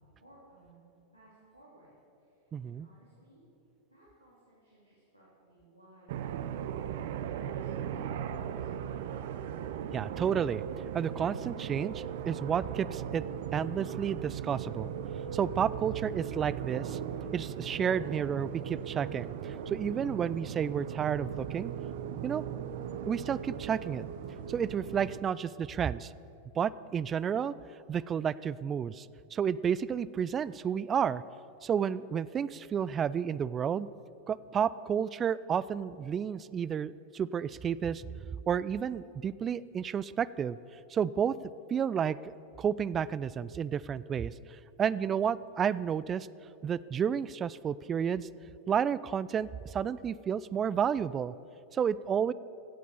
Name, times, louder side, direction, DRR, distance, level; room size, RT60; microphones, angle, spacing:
voice 1, 0.0-1.9 2.2-3.4 3.9-9.1, right 1 dB, 90° right, -9 dB, 3.1 m, -61 dB
voice 2, 2.5-2.9 9.9-10.6 10.9-13.2 13.5-14.9 15.3-17.0 17.3-21.7 22.2-22.4 23.1-24.1 24.5-26.1 26.6-27.5 27.9-31.2 31.6-33.9 34.3-38.1 38.5-40.6 40.9-41.4 41.7-42.2 42.6-46.3 46.6-48.3 48.7-51.4 51.7-52.3, right 8 dB, 25° right, 19 dB, 0.3 m, -31 dB
sound 1, 6.1-25.2, right 9 dB, 55° right, 0.7 m, -38 dB
16.0 x 8.4 x 7.0 m, 2.9 s
figure-of-eight pair, 90°, 0 cm